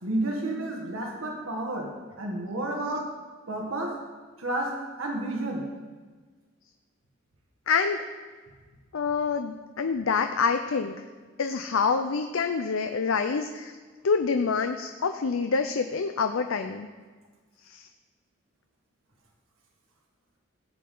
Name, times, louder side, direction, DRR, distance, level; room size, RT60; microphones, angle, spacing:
voice 1, 0.0-1.9 2.2-3.1 3.5-3.9 4.4-5.6, right 1 dB, 85° right, 0 dB, 1.8 m, -31 dB
voice 2, 7.7-8.0 8.9-11.0 11.4-13.7 14.0-16.9 17.7-17.8, left 5 dB, 85° left, 7 dB, 0.5 m, -26 dB
16.0 x 8.5 x 3.9 m, 1.4 s
head